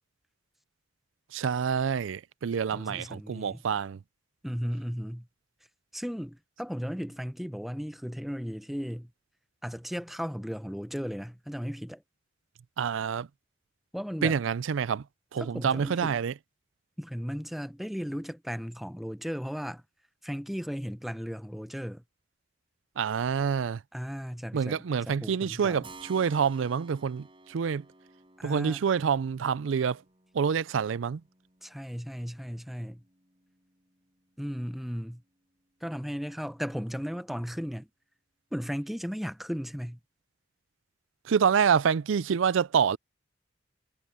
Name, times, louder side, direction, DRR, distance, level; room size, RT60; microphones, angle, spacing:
voice 1, 1.3-4.0 12.8-13.3 14.2-15.0 15.3-16.3 23.0-23.8 24.5-27.8 28.4-30.0 30.3-31.2 41.3-43.0, right 7 dB, 85° right, 0.4 m, -27 dB
voice 2, 2.7-3.6 4.4-5.3 5.9-9.1 9.6-12.0 13.9-14.4 15.4-16.2 17.0-19.8 20.2-22.0 23.9-25.8 28.4-28.8 31.6-33.0 34.4-35.2 35.8-37.9 38.5-40.0, equal, ahead, 0.6 m, -36 dB
Keyboard (musical), 25.8-34.4, right 3 dB, 25° right, 7.7 m, -55 dB
head